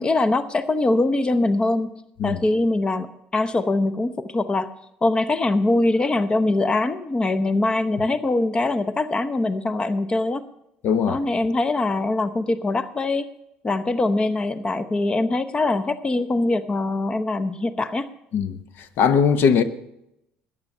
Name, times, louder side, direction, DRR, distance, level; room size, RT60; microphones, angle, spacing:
voice 1, 0.0-1.9 2.2-3.1 3.3-4.7 5.0-10.5 11.1-13.3 13.6-18.1, left 2 dB, 25° left, 0.8 m, -22 dB
voice 2, 10.8-11.2 18.3-19.6, left 6 dB, 65° left, 1.0 m, -20 dB
14.0 x 10.0 x 5.5 m
supercardioid pair, 85°, 4 cm